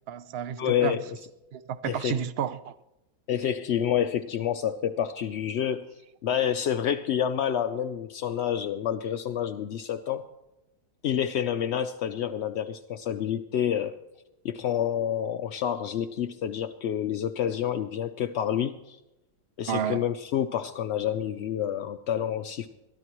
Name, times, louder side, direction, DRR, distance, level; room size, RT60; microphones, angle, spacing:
voice 1, 0.1-1.0 1.5-2.7 19.7-20.0, right 9 dB, 70° right, 0.5 m, -31 dB
voice 2, 0.6-1.1 1.8-2.2 3.3-5.9 6.2-10.3 11.0-13.9 14.4-19.0 19.6-22.7, left 9 dB, 70° left, 0.6 m, -28 dB
22.0 x 13.0 x 3.0 m
omnidirectional pair, 1.7 m